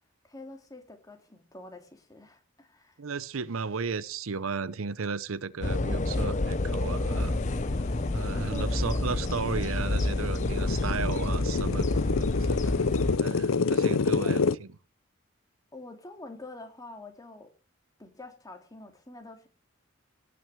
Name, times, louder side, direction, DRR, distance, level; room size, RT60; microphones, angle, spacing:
voice 1, 0.2-3.0 8.5-9.0 14.2-14.4 15.7-17.5 18.0-19.5, left 2 dB, 20° left, 2.3 m, -46 dB
voice 2, 3.0-7.4 8.1-11.9 12.1-12.7 13.2-14.7, right 5 dB, 80° right, 0.7 m, -34 dB
sound 1, 5.6-13.2, left 2 dB, 40° left, 0.8 m, -29 dB
sound 2, 8.1-8.2 8.6-14.5, left 4 dB, 85° left, 0.6 m, -28 dB
17.5 x 6.2 x 7.6 m
head